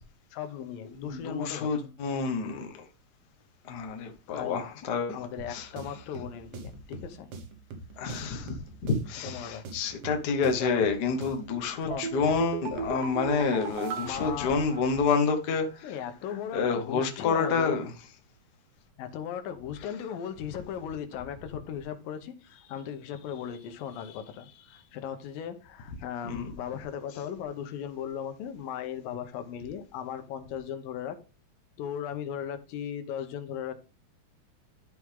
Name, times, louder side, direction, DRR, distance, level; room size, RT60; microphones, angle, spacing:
voice 1, 0.3-1.7 4.3-4.8 5.1-7.3 9.1-9.6 10.5-10.8 11.8-12.1 13.2-13.6 14.0-14.8 15.8-17.8 19.0-31.2 31.8-33.7, left 9 dB, 90° left, 2.7 m, -37 dB
voice 2, 1.0-2.8 3.7-5.2 5.5-5.7 8.0-8.6 8.8-15.9 16.5-17.9 26.2-26.5, left 5 dB, 60° left, 1.0 m, -28 dB
sound 1, 5.4-11.6, right 4 dB, 90° right, 3.2 m, -45 dB
sound 2, 11.9-15.3 15.6-15.7, right 7 dB, 65° right, 1.6 m, -37 dB
11.5 x 4.9 x 3.5 m
omnidirectional pair, 3.9 m